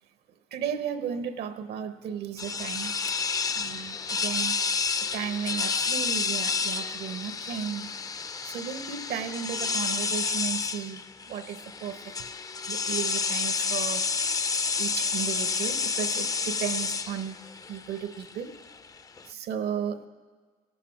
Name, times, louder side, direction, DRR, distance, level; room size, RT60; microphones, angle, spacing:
voice 1, 0.5-2.9 3.5-4.5 5.1-7.9 8.4-12.1 12.7-14.1 14.8-17.4 17.7-18.5 19.3-20.1, right 8 dB, 75° right, 10 dB, 0.9 m, -34 dB
sound 1, 2.4-19.3, left 5 dB, 20° left, 0.4 m, -30 dB
17.5 x 8.3 x 5.9 m, 1.5 s
cardioid pair, 110°, 17 cm